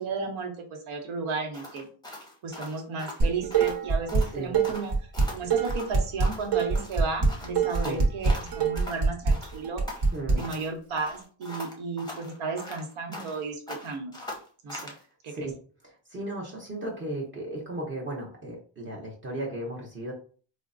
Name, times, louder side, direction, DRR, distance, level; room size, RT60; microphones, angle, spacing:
voice 1, 0.0-1.9 2.4-4.9 5.3-9.8 10.3-14.1 14.6-14.9 15.2-15.3, right 4 dB, 85° right, 3 dB, 1.0 m, -34 dB
sound 1, 1.5-3.8 4.1-4.4 4.6-6.5 6.8-9.0 9.3-10.7 11.0-13.4 13.7-15.0, left 1 dB, 10° left, 0.6 m, -41 dB
Dishes pots and pans, 3.2-4.2 4.5-10.3, right 5 dB, 60° right, 1.0 m, -24 dB
voice 2, 10.1-10.5 14.9-15.0 15.3-15.5 15.8-20.1, right 1 dB, 25° right, -3 dB, 0.7 m, -35 dB
4.3 x 2.1 x 2.5 m, 0.41 s
cardioid pair, 155°, 47 cm